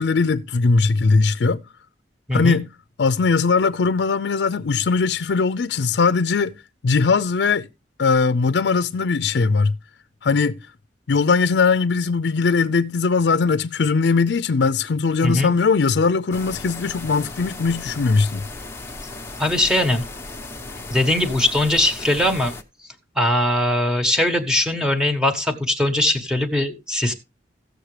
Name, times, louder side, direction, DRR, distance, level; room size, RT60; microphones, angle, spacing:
voice 1, 0.0-1.6 2.3-2.7 3.0-6.5 6.8-7.7 8.0-9.7 10.2-10.6 11.1-18.4, left 4 dB, 75° left, 0.5 m, -20 dB
voice 2, 2.3-2.6 15.2-15.5 19.4-20.0 20.9-22.5 23.1-27.1, left 1 dB, 5° right, 1.4 m, -20 dB
sound 1, 16.3-22.6, left 2 dB, 15° left, 1.0 m, -36 dB
16.0 x 6.5 x 3.2 m
head